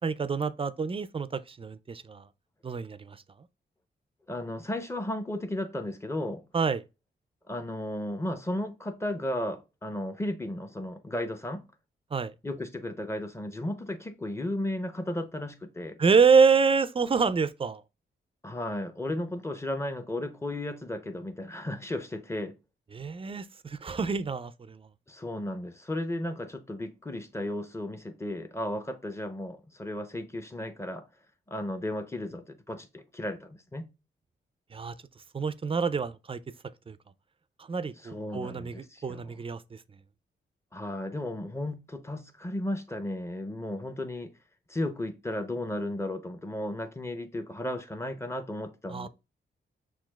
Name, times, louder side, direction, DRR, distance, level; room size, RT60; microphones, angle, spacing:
voice 1, 0.0-2.2 2.6-3.2 6.5-6.8 12.1-12.3 16.0-17.8 22.9-24.8 34.7-34.9 35.3-36.4 36.9-37.0 37.6-39.8 48.9-49.1, right 5 dB, 30° right, 0.3 m, -26 dB
voice 2, 4.3-6.4 7.5-11.6 12.4-16.0 18.4-22.5 25.1-31.1 31.5-33.9 38.0-39.4 40.7-44.3 44.7-49.1, left 1 dB, 15° left, 0.7 m, -34 dB
6.0 x 2.4 x 2.2 m
cardioid pair, 65°, 20 cm